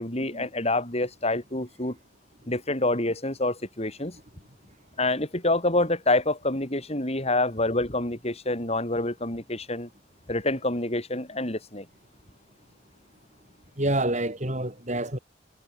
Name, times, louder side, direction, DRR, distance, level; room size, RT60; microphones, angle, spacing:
voice 1, 0.0-2.0 2.5-4.2 5.0-9.9 10.3-11.9, left 2 dB, 35° left, 6.3 m, -27 dB
voice 2, 13.8-15.2, right 1 dB, 40° right, 7.4 m, -28 dB
head